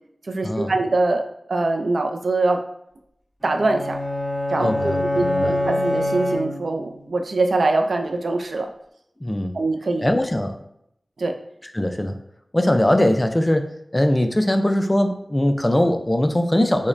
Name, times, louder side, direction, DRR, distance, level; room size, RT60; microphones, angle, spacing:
voice 1, 0.3-2.6 3.4-4.0 4.5-8.7 9.5-10.1 11.2-11.3, right 2 dB, 75° right, 4 dB, 0.4 m, -23 dB
sound 1, 3.4-7.0, left 1 dB, 5° left, 1.2 m, -25 dB
voice 2, 4.6-5.6 9.2-9.5 10.0-10.6 11.7-12.2 12.5-16.9, left 1 dB, 20° left, 6 dB, 0.3 m, -21 dB
5.1 x 2.1 x 2.5 m, 0.77 s
wide cardioid pair, 80°, 0 cm